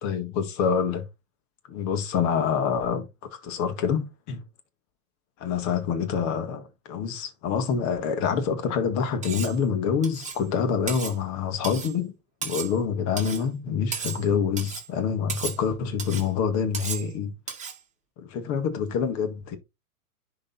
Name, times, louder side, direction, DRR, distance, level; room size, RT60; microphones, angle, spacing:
voice 1, 0.0-1.1 1.7-4.4 5.4-12.1 12.4-17.3 18.2-19.6, left 6 dB, 40° left, 2.0 m, -26 dB
Cutlery silverware, 9.2-9.6 10.0-10.4 10.9-11.2 11.6-12.0 12.4-12.8 13.2-13.4 13.9-14.3 14.6-14.9 15.3-15.6 16.0-16.3 16.7-17.1 17.5-17.8, right 6 dB, 15° right, 2.2 m, -34 dB
10.5 x 3.8 x 4.0 m
hypercardioid pair, 115°, 45 cm